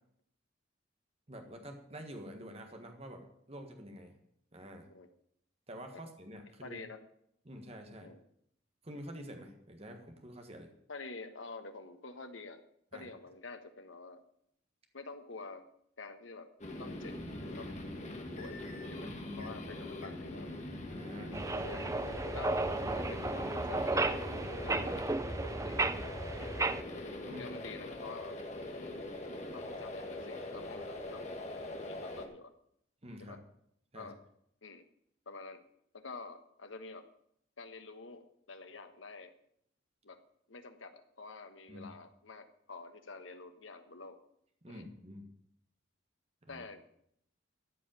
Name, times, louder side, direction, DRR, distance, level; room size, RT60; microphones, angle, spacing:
voice 1, 1.3-4.2 4.5-4.9 5.7-6.8 7.4-8.1 8.8-10.7 12.9-13.1 19.0-19.5 20.8-21.3 27.2-27.5 33.0-33.4 33.9-34.1 41.7-41.9 44.6-45.3 46.4-46.6, equal, 30° right, 4 dB, 1.6 m, -48 dB
voice 2, 6.6-7.0 8.0-8.2 10.9-12.6 12.9-14.2 14.9-15.6 16.0-16.5 16.8-17.2 17.6-17.7 18.4-18.6 18.9-19.1 19.4-20.5 21.1-21.4 21.6-21.9 22.3-24.2 24.6-25.8 26.0-26.8 27.3-28.4 29.5-31.2 31.8-32.5 33.2-33.4 33.9-34.2 34.6-34.8 35.3-35.6 35.9-37.1 37.6-39.3 40.0-40.2 40.5-44.2 44.7-44.9 46.5-46.8, left 3 dB, 80° left, 8 dB, 1.3 m, -48 dB
sound 1, 16.6-32.3, left 1 dB, 35° left, 1.6 m, -42 dB
sound 2, 21.3-26.8, right 2 dB, 15° right, 0.4 m, -34 dB
13.5 x 5.4 x 8.9 m, 0.71 s
head